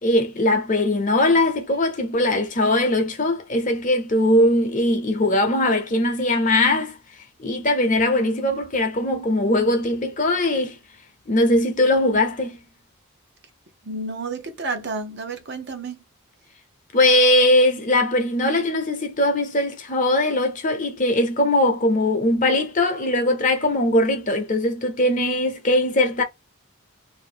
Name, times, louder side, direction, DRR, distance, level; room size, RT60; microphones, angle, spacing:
voice 1, 0.0-7.0 7.4-10.8 11.3-12.6 16.9-26.2, left 1 dB, 35° left, 0.7 m, -20 dB
voice 2, 13.8-16.0, right 3 dB, 50° right, 0.8 m, -30 dB
2.8 x 2.6 x 4.3 m
head